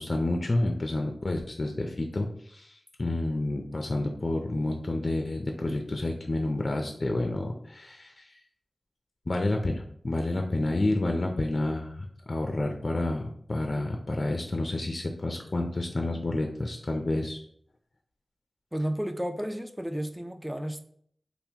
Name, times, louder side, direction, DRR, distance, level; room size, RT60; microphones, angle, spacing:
voice 1, 0.0-8.3 9.3-17.4, left 2 dB, 55° left, 3 dB, 0.4 m, -29 dB
voice 2, 18.7-20.8, equal, 10° right, 8 dB, 0.4 m, -32 dB
3.5 x 2.4 x 2.8 m, 0.63 s
cardioid pair, 45°, 0 cm